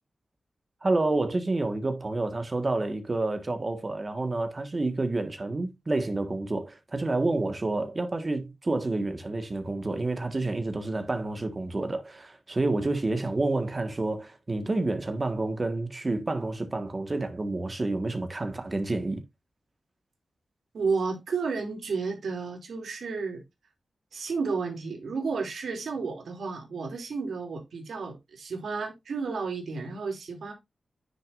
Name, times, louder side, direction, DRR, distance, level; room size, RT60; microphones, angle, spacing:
voice 1, 0.8-19.2, right 2 dB, 30° right, 1.5 m, -29 dB
voice 2, 20.7-23.4 24.1-30.5, right 4 dB, 90° right, 2.8 m, -32 dB
9.9 x 6.2 x 2.5 m
wide cardioid pair, 120°, 0 cm